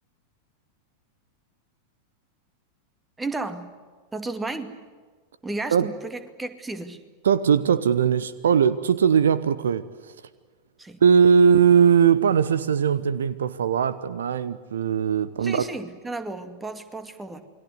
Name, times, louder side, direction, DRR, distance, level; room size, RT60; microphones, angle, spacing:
voice 1, 3.2-3.7 4.1-4.8 5.4-7.0 10.8-11.0 15.4-17.4, right 2 dB, 10° right, 2.3 m, -33 dB
voice 2, 7.2-10.1 11.0-15.7, right 7 dB, 65° right, 1.0 m, -20 dB
29.0 x 22.0 x 8.1 m
figure-of-eight pair, 90°, 0 cm